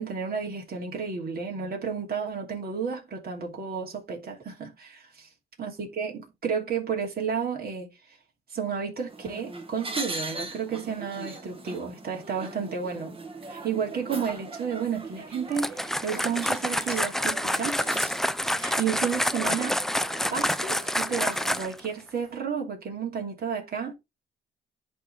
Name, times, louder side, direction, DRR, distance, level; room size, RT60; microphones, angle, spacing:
voice 1, 0.0-5.3 5.6-7.9 8.5-13.2 13.5-17.8 18.5-19.8 20.3-23.9, right 6 dB, 50° right, 2.7 m, -32 dB
sound 1, 9.1-21.6, right 3 dB, 25° right, 1.5 m, -40 dB
sound 2, 15.5-21.9, equal, ahead, 0.4 m, -28 dB
10.5 x 3.8 x 3.3 m
cardioid pair, 90°, 20 cm